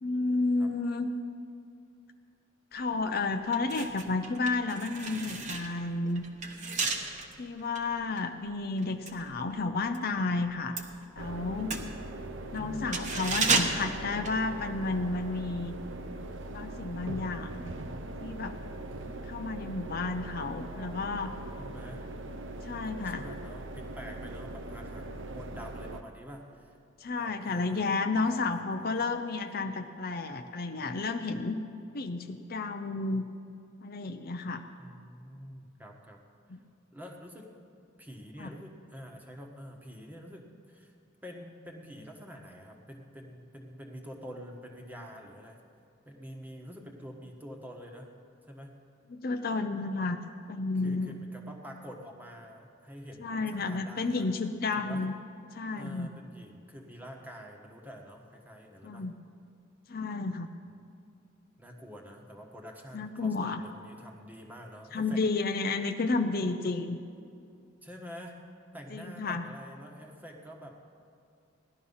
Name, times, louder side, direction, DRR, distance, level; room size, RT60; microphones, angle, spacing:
voice 1, 0.0-1.1 2.7-6.2 7.4-10.8 11.2-11.7 12.5-15.7 16.5-17.7 18.2-18.5 19.3-21.3 22.6-23.2 27.0-31.6 31.9-33.2 33.8-34.6 36.5-36.6 38.4-38.5 49.1-50.2 50.5-51.2 53.2-55.1 55.5-56.1 58.8-59.1 59.9-60.5 62.9-63.6 64.9-67.0 68.9-69.4, left 3 dB, 50° left, 6 dB, 0.6 m, -31 dB
sound 1, 2.8-3.0 3.4-10.1 10.3-15.0 15.3-15.4, right 4 dB, 40° right, 1.1 m, -34 dB
sound 2, 11.2-26.0, right 1 dB, 70° right, 0.8 m, -41 dB
voice 2, 12.6-13.1 21.6-22.1 22.6-26.8 27.2-29.1 34.8-36.6 36.9-37.5 38.0-41.0 41.2-45.6 46.0-48.1 48.5-48.7 50.8-54.3 54.7-55.0 55.7-59.1 61.6-65.2 67.8-68.4 68.7-70.9, equal, 10° right, 1 dB, 1.3 m, -47 dB
17.0 x 12.0 x 5.5 m, 2.5 s
head